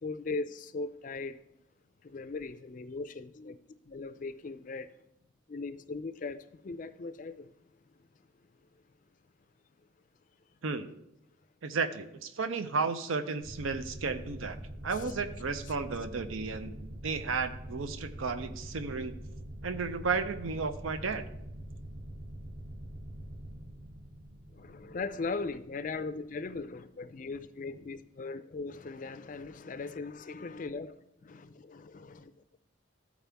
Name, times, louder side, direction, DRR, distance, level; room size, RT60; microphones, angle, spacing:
voice 1, 0.0-1.4 2.0-3.6 3.9-4.9 5.5-7.5 14.9-15.2 15.7-15.8 24.5-32.6, left 3 dB, 40° left, 12 dB, 0.4 m, -39 dB
voice 2, 11.6-14.6 14.8-19.1 19.6-21.2, right 4 dB, 85° right, 9 dB, 0.6 m, -33 dB
sound 1, 13.4-26.7, right 1 dB, 25° right, 0.5 m, -44 dB
14.0 x 4.7 x 3.4 m, 0.83 s
head